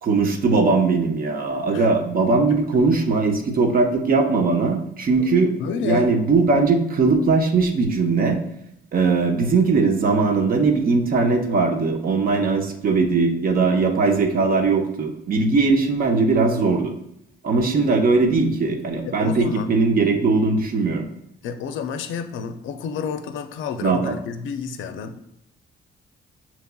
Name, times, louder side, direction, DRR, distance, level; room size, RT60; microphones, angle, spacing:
voice 1, 0.0-5.5 5.8-8.4 8.9-16.9 17.4-21.0 23.8-24.1, right 4 dB, 45° right, 3 dB, 0.7 m, -20 dB
voice 2, 5.6-6.1 19.0-19.7 21.4-25.2, left 6 dB, 75° left, 8 dB, 0.4 m, -30 dB
6.5 x 2.9 x 2.2 m, 0.78 s
cardioid pair, 90°, 20 cm